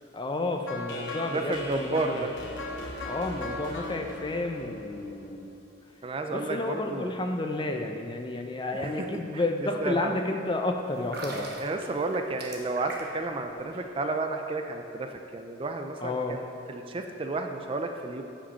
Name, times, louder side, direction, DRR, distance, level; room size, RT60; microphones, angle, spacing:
voice 1, 0.1-2.3 3.0-5.6 6.3-11.5 16.0-16.4, left 2 dB, 25° left, 4 dB, 0.5 m, -31 dB
sound 1, 0.7-5.7, left 2 dB, 90° left, 0.9 m, -39 dB
voice 2, 1.3-2.3 6.0-7.1 8.8-9.1 9.3-9.4 9.8-10.1 11.6-18.2, right 2 dB, 30° right, 5 dB, 0.4 m, -32 dB
sound 2, 11.0-13.3 13.6-13.8, right 2 dB, 55° right, 1.1 m, -39 dB
8.6 x 5.2 x 5.5 m, 2.6 s
head